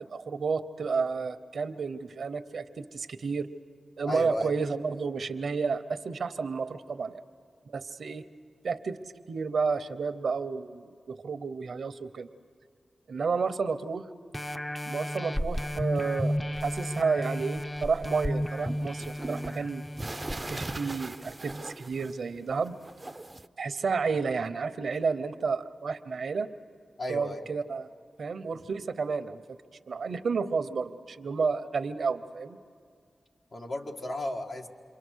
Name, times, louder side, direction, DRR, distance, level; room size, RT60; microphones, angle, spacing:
voice 1, 0.1-3.5 4.0-7.2 7.7-8.2 8.6-9.0 9.3-12.3 13.1-14.1 14.9-16.4 16.6-19.9 20.5-22.8 23.6-26.5 27.1-27.9 28.2-29.6 29.9-32.6, right 5 dB, 75° right, 11 dB, 0.8 m, -31 dB
voice 2, 4.0-4.5 27.0-27.4 33.5-34.7, left 1 dB, 60° left, 1 dB, 1.8 m, -34 dB
sound 1, 14.3-21.5 22.1-22.2, equal, 20° left, 0.7 m, -33 dB
sound 2, 18.1-22.4 22.7-23.5, right 2 dB, 25° right, 0.5 m, -40 dB
28.0 x 23.0 x 6.4 m, 2.1 s
cardioid pair, 50°, 0 cm